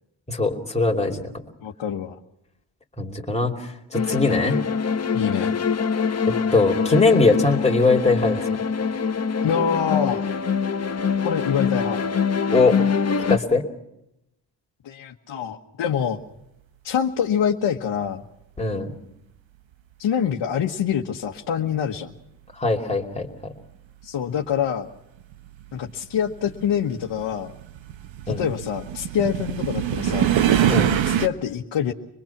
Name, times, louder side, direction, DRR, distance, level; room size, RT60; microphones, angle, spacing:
voice 1, 0.3-1.2 3.0-4.6 6.5-8.5 12.5-12.8 13.2-13.6 18.6-18.9 22.6-23.5 28.3-28.4 30.7-31.0, left 3 dB, 15° left, 0 dB, 2.9 m, -21 dB
voice 2, 1.6-2.2 5.1-5.6 9.4-10.2 11.2-12.0 14.8-16.2 16.8-18.2 20.0-22.1 24.0-24.9 25.7-27.5 28.3-30.3 31.0-31.9, left 8 dB, 65° left, 1 dB, 1.4 m, -25 dB
sound 1, 3.9-13.4, left 6 dB, 30° left, 1.2 m, -24 dB
sound 2, 24.0-24.1 25.2-31.3, right 10 dB, 70° right, 1.2 m, -24 dB
26.0 x 21.0 x 5.9 m, 0.85 s
cardioid pair, 85°, 47 cm